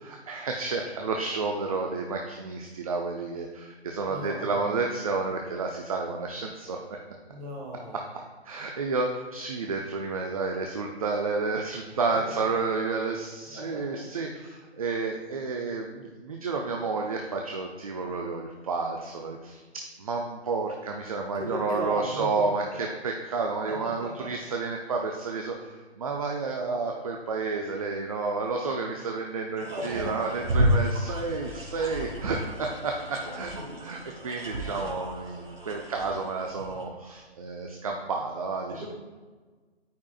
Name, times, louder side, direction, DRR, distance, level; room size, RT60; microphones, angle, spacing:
voice 1, 0.0-6.8 7.9-33.5 33.8-38.9, right 4 dB, 35° right, 1 dB, 0.7 m, -31 dB
voice 2, 4.1-4.9 7.3-8.1 12.0-12.5 13.5-14.0 21.3-22.7 23.6-24.3 29.6-30.4 33.5-34.2 38.7-38.9, equal, 15° right, -2 dB, 1.5 m, -38 dB
sound 1, 29.6-36.9, equal, 60° right, 2.4 m, -31 dB
13.0 x 4.7 x 2.4 m, 1.3 s
figure-of-eight pair, 140°, 33 cm